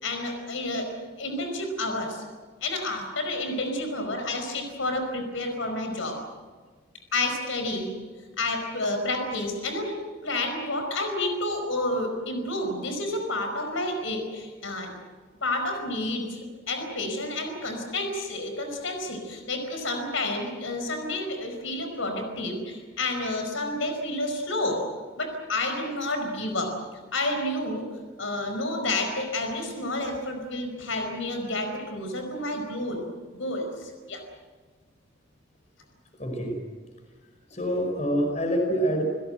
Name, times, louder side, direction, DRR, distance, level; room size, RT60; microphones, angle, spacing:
voice 1, 0.0-0.9 1.2-2.2 2.6-6.2 7.1-7.9 8.4-9.9 10.2-14.9 15.4-16.4 16.7-24.8 25.2-26.7 27.1-27.9 28.2-33.0 33.3-34.2, left 2 dB, 80° left, 5 dB, 5.0 m, -30 dB
voice 2, 36.1-36.6 37.5-39.0, equal, 35° left, 3 dB, 5.2 m, -26 dB
29.0 x 17.5 x 7.8 m, 1.5 s
head